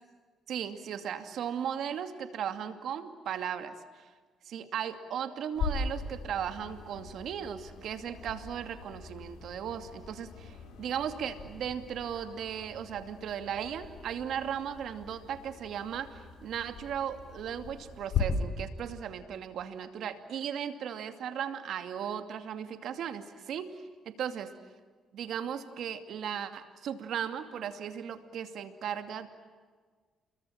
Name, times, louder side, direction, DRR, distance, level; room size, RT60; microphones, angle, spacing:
voice 1, 0.5-4.1 4.4-24.5 25.1-29.3, right 8 dB, 70° right, 8 dB, 2.5 m, -37 dB
sound 1, 5.5-18.2, left 6 dB, 80° left, 6.8 m, -40 dB
30.0 x 22.5 x 8.8 m, 1.5 s
cardioid pair, 90°, 0 cm